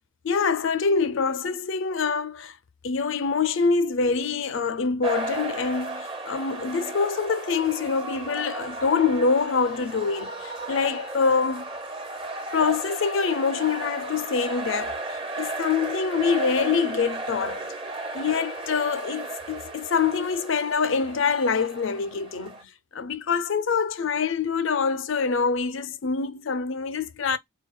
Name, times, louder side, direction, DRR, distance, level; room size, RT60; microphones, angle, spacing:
voice 1, 0.2-2.6 2.8-11.7 12.5-17.7 18.1-27.4, left 5 dB, 60° left, 0.5 m, -25 dB
sound 1, 5.0-22.6, right 2 dB, 25° right, 0.6 m, -35 dB
4.0 x 2.2 x 4.2 m
head